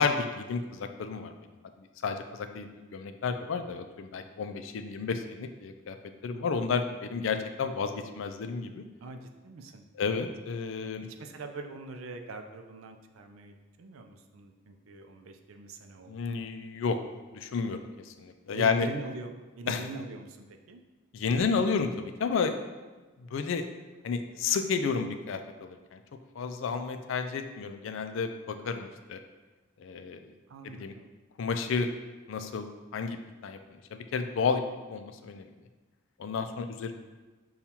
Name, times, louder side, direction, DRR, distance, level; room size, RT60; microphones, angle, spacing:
voice 1, 0.0-1.3 1.8-6.0 6.2-8.8 10.0-11.1 16.1-17.0 17.3-18.9 19.7-19.8 21.1-22.6 23.2-23.6 24.0-26.0 26.4-29.2 29.8-30.2 30.6-30.9 31.4-31.9 32.3-32.7 32.9-33.6 33.9-34.6 34.9-35.5 36.2-36.9, left 5 dB, 75° left, 8 dB, 0.3 m, -31 dB
voice 2, 9.0-9.9 11.0-16.4 18.5-20.8 26.4-26.6 30.5-31.1, right 3 dB, 85° right, 5 dB, 0.4 m, -43 dB
6.8 x 2.3 x 2.8 m, 1.3 s
head